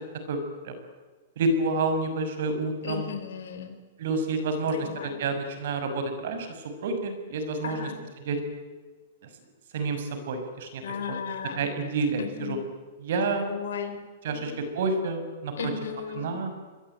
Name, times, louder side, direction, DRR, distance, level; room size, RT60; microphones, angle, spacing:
voice 1, 0.3-0.7 1.4-3.0 4.0-6.5 6.8-7.9 8.2-8.4 9.7-10.8 11.1-11.2 11.6-12.6 13.0-13.5 14.2-15.7 16.2-16.5, right 3 dB, 65° right, 8 dB, 6.8 m, -29 dB
voice 2, 2.8-3.8 4.7-5.2 7.6-8.0 10.8-11.7 12.2-12.6 13.5-14.0 14.3-14.6 15.6-16.3, left 7 dB, 85° left, 7 dB, 4.4 m, -35 dB
26.5 x 22.0 x 9.5 m, 1.4 s
supercardioid pair, 160°, 0 cm